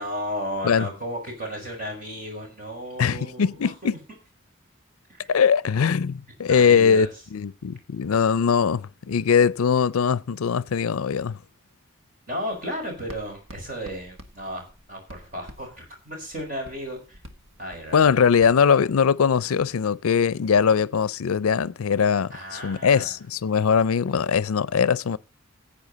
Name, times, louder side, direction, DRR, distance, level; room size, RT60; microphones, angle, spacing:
voice 1, 0.0-4.0 5.1-5.3 6.5-7.1 12.3-17.2 17.6-18.1 22.3-23.1, equal, 40° right, 5.5 m, -34 dB
voice 2, 3.0-3.9 5.3-11.4 17.9-25.2, left 6 dB, 90° left, 0.5 m, -21 dB
Writing, 12.5-18.7, equal, 65° right, 1.5 m, -48 dB
15.5 x 8.7 x 4.1 m
head